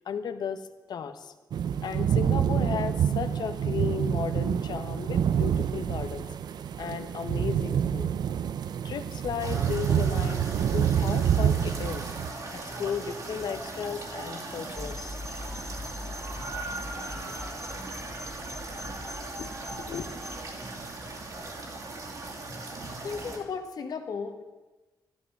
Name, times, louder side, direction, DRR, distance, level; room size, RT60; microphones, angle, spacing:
voice 1, 0.0-1.3 1.8-6.3 6.8-8.1 8.8-12.1 12.5-15.2 19.4-20.1, left 7 dB, 90° left, 9 dB, 1.1 m, -35 dB
sound 1, 1.5-12.3, right 9 dB, 90° right, 0.6 m, -27 dB
sound 2, 9.4-23.4, right 2 dB, 55° right, 2.5 m, -39 dB
sound 3, 14.7-20.4, left 2 dB, 5° left, 0.7 m, -41 dB
voice 2, 23.0-24.4, left 5 dB, 70° left, 6 dB, 1.5 m, -35 dB
13.0 x 13.0 x 6.6 m, 1.2 s
wide cardioid pair, 170°, 7 cm